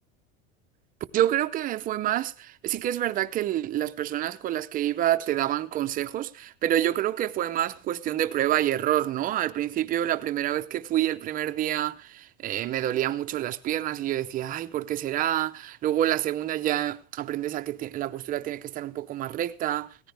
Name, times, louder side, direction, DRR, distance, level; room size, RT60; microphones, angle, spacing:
voice 1, 1.1-20.0, right 12 dB, 25° right, 0.6 m, -27 dB
17.5 x 14.5 x 3.4 m
cardioid pair, 170°, 33 cm